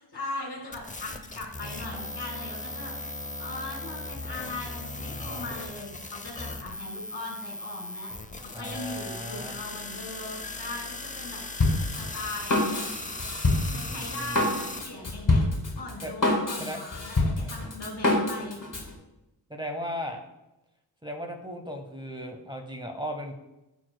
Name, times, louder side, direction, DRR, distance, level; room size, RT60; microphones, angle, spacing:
voice 1, 0.0-2.9 3.4-8.1 8.4-11.4 12.0-12.8 13.7-15.4 15.8-18.6, left 2 dB, 75° left, 1 dB, 2.2 m, -39 dB
sound 1, 0.7-14.8, left 2 dB, 20° left, 0.6 m, -38 dB
voice 2, 5.1-5.5 8.5-9.6 13.6-14.4 16.0-16.1 16.6-16.8 17.4-17.5 19.5-20.2 21.0-23.3, equal, 10° right, 3 dB, 0.9 m, -37 dB
Drum kit, 11.6-18.9, left 2 dB, 45° left, 1.9 m, -26 dB
12.5 x 4.4 x 2.2 m, 0.95 s
cardioid pair, 65°, 43 cm